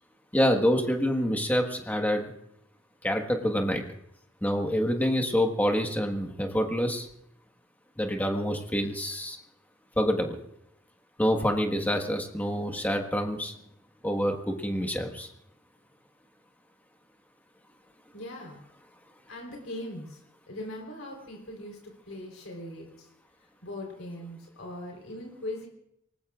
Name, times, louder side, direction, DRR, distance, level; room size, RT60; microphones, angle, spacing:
voice 1, 0.3-2.3 3.0-3.8 4.4-7.1 8.0-9.4 10.0-10.4 11.2-13.5 14.0-15.3, equal, 10° left, 4 dB, 1.5 m, -27 dB
voice 2, 18.1-18.6 19.3-20.2 20.5-22.9 23.6-25.7, left 1 dB, 85° left, 0 dB, 3.8 m, -40 dB
26.5 x 19.5 x 2.5 m, 0.75 s
head